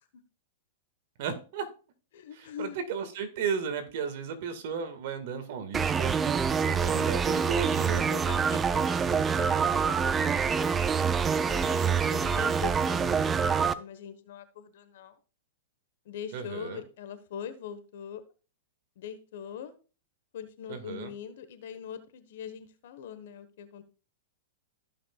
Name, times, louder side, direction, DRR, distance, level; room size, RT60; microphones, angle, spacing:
voice 1, 1.2-1.7 2.3-8.1 11.7-12.5 16.3-16.8 20.7-21.1, right 6 dB, 60° right, 8 dB, 1.9 m, -35 dB
voice 2, 2.1-2.8 6.6-7.2 8.1-10.9 11.4-15.2 16.0-18.2 19.0-19.7 20.3-23.8, left 8 dB, 65° left, 12 dB, 1.3 m, -42 dB
sound 1, 5.7-13.7, right 6 dB, 20° right, 0.5 m, -26 dB
15.0 x 6.0 x 2.4 m, 0.36 s
hypercardioid pair, 120°, 0 cm